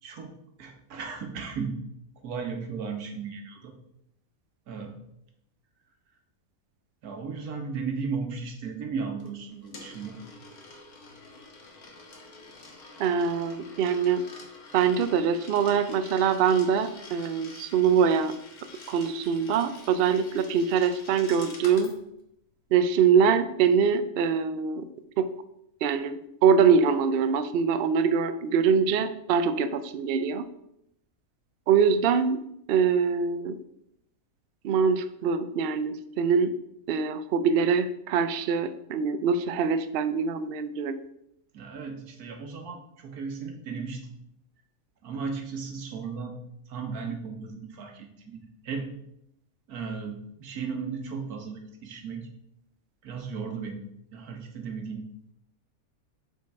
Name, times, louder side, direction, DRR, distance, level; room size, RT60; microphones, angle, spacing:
voice 1, 0.0-1.8 2.2-3.7 4.7-4.9 7.0-10.2 41.5-44.1 45.0-46.4 46.7-48.9 49.7-52.3 53.0-53.8 54.1-55.0, right 5 dB, 90° right, 4 dB, 1.6 m, -35 dB
Coin (dropping), 9.2-22.0, left 3 dB, 90° left, 1.8 m, -48 dB
voice 2, 13.0-14.2 14.7-18.4 18.9-22.0 22.7-24.9 25.2-25.3 25.8-30.5 31.7-32.4 32.7-33.6 34.6-36.6 36.9-41.0, right 6 dB, 65° right, 11 dB, 0.6 m, -24 dB
7.0 x 4.5 x 4.7 m, 0.78 s
omnidirectional pair, 1.5 m